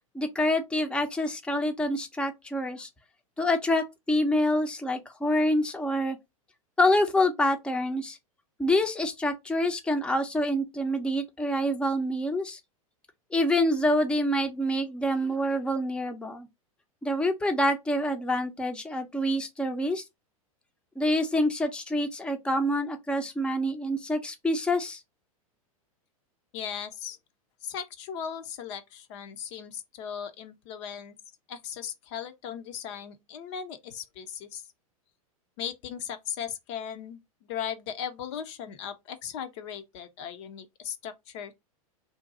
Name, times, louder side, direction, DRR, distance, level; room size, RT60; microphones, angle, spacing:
voice 1, 0.1-2.9 3.4-6.2 6.8-8.2 8.6-12.6 13.3-16.5 17.0-20.0 21.0-25.0, left 1 dB, 5° left, 0.6 m, -26 dB
voice 2, 26.5-27.2 27.6-31.1 31.5-34.6 35.6-37.2 37.5-41.5, left 8 dB, 50° left, 0.6 m, -37 dB
2.6 x 2.3 x 3.8 m
figure-of-eight pair, 95°, 19 cm